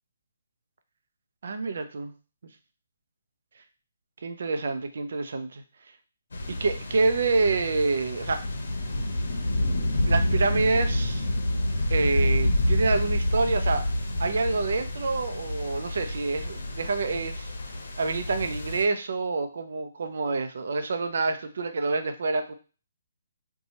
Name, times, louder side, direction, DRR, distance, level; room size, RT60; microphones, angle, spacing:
voice 1, 1.4-2.1 4.2-5.6 6.5-8.4 9.5-11.3 11.9-13.9 14.2-17.5 18.0-22.5, right 3 dB, 65° right, 8 dB, 0.5 m, -27 dB
sound 1, 6.3-18.8, left 1 dB, 75° left, 0.7 m, -28 dB
2.9 x 2.3 x 4.1 m, 0.36 s
hypercardioid pair, 155°, 0 cm